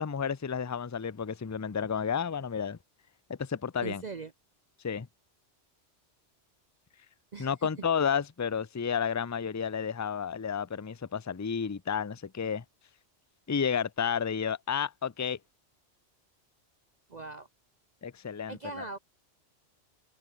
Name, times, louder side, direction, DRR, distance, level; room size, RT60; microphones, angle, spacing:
voice 1, 0.0-2.8 3.3-4.0 4.8-5.1 7.4-12.6 13.5-15.4 18.0-18.6, left 7 dB, 25° left, 0.4 m, -31 dB
voice 2, 3.8-4.3 7.3-7.9 17.1-17.5 18.5-19.0, right 4 dB, 40° right, 0.8 m, -40 dB
omnidirectional pair, 1.2 m